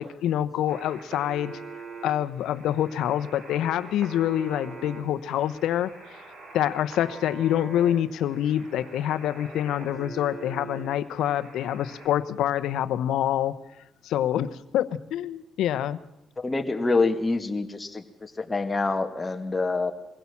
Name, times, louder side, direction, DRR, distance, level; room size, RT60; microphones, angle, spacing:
voice 1, 0.0-1.6 2.0-5.9 6.5-13.5 14.0-16.0, left 11 dB, 85° left, 12 dB, 0.9 m, -26 dB
sound 1, 0.7-12.1, right 4 dB, 70° right, 6.9 m, -44 dB
voice 2, 16.4-19.9, left 3 dB, 20° left, 6 dB, 2.0 m, -26 dB
22.0 x 16.0 x 7.2 m, 0.84 s
cardioid pair, 90°, 0 cm